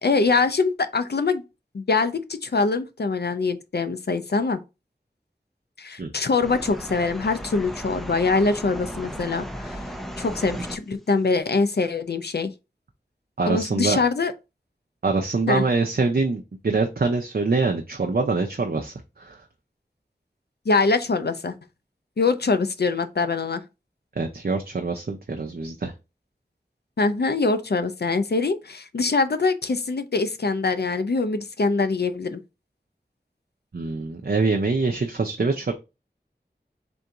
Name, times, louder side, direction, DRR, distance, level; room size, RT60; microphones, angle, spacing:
voice 1, 0.0-1.4 1.7-4.6 5.8-9.8 10.2-12.5 13.5-14.3 15.5-15.6 20.7-21.6 22.2-23.6 27.0-32.4, left 4 dB, 70° left, 0.5 m, -23 dB
sound 1, 6.4-10.8, equal, ahead, 0.6 m, -35 dB
voice 2, 13.4-14.0 15.0-19.4 24.2-25.9 33.7-35.7, right 3 dB, 60° right, 0.6 m, -24 dB
3.8 x 2.6 x 4.5 m
wide cardioid pair, 45°, 18 cm